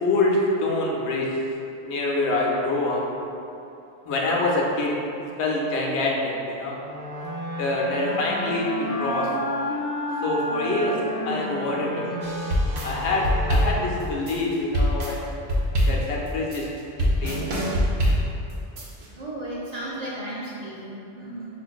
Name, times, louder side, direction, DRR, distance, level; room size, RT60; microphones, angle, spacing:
voice 1, 0.0-1.3 1.8-3.0 4.1-5.0 5.4-6.8 7.6-8.7 9.0-9.3 10.2-11.0 11.3-12.1 12.8-15.4 15.9-16.7 17.0-17.6, left 2 dB, 75° left, -3 dB, 0.8 m, -25 dB
sound 1, 6.8-14.3, equal, 35° left, 0.6 m, -31 dB
sound 2, 12.2-19.1, equal, 75° right, 0.8 m, -24 dB
voice 2, 19.2-21.5, right 1 dB, 55° right, -8 dB, 0.5 m, -34 dB
4.4 x 2.5 x 2.2 m, 2.8 s
omnidirectional pair, 1.1 m